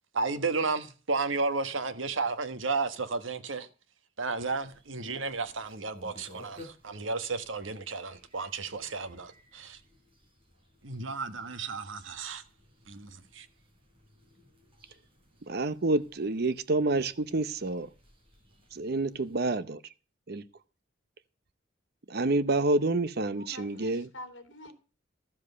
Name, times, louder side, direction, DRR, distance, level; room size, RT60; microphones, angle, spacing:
voice 1, 0.1-3.7 4.2-9.8 10.8-12.4 12.9-13.5, right 4 dB, 80° right, 1.3 m, -33 dB
sound 1, 4.4-19.4, left 1 dB, 30° right, 4.3 m, -58 dB
voice 2, 15.5-17.9 18.7-19.8 20.3-20.4 22.1-24.1, right 2 dB, 55° right, 0.8 m, -28 dB
voice 3, 23.2-24.7, left 1 dB, 65° left, 2.7 m, -47 dB
13.0 x 7.5 x 6.7 m
head